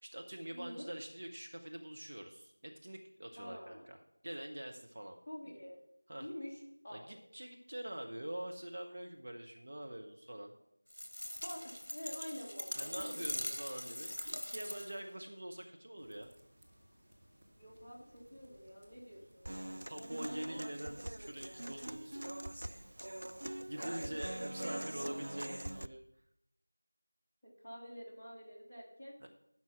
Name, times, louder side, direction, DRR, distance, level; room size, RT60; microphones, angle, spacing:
voice 1, 0.0-4.0 4.2-5.2 6.1-6.3 6.9-10.5 12.8-16.3 19.9-22.2 23.6-26.0 29.2-29.3, right 1 dB, 40° right, 3 dB, 0.8 m, -45 dB
voice 2, 0.5-0.9 3.4-3.9 5.3-5.8 6.2-7.2 11.4-13.5 17.6-19.4 20.0-20.3 22.1-22.2 23.7-24.7 27.4-29.2, equal, 5° left, -13 dB, 1.8 m, -48 dB
sound 1, 10.9-15.1, left 1 dB, 65° left, 1.0 m, -42 dB
sound 2, 16.0-24.5, equal, 10° right, 1.0 m, -64 dB
Human voice / Acoustic guitar, 19.4-25.9, right 1 dB, 55° right, 0.4 m, -43 dB
12.0 x 5.6 x 6.0 m, 0.77 s
figure-of-eight pair, 175°, 0 cm